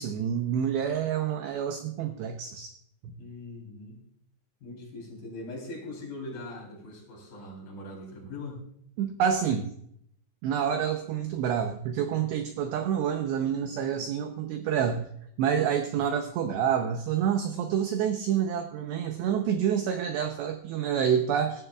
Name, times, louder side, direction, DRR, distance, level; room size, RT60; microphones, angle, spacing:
voice 1, 0.0-2.7 3.0-3.1 9.0-9.7 10.4-15.0 15.4-21.6, right 8 dB, 85° right, 6 dB, 2.4 m, -28 dB
voice 2, 3.2-4.0 4.6-8.6 16.1-16.2, left 2 dB, 45° left, -1 dB, 4.9 m, -41 dB
17.5 x 12.0 x 2.4 m, 0.69 s
omnidirectional pair, 5.9 m